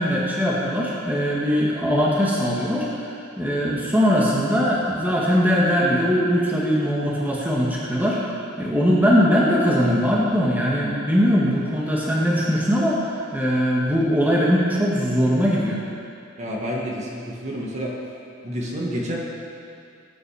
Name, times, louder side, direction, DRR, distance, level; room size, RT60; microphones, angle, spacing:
voice 1, 0.0-8.2 8.6-15.8, equal, 10° right, -5 dB, 1.8 m, -21 dB
voice 2, 16.4-17.9 18.4-19.2, equal, 35° right, -3 dB, 1.8 m, -29 dB
20.0 x 9.0 x 4.9 m, 2.4 s
head